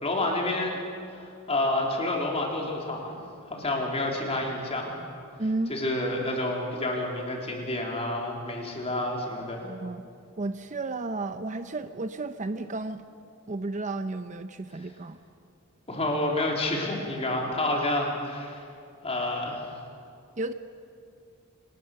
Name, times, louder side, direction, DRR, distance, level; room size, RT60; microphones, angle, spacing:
voice 1, 0.0-0.8 1.1-3.2 3.4-4.9 5.7-9.6 15.9-18.6 19.0-19.7, left 1 dB, 30° left, -1 dB, 3.7 m, -29 dB
voice 2, 5.4-5.7 9.6-10.0 10.4-13.0 13.5-15.2 20.4-20.5, right 2 dB, 35° right, 10 dB, 0.7 m, -32 dB
27.0 x 19.5 x 6.6 m, 2.4 s
head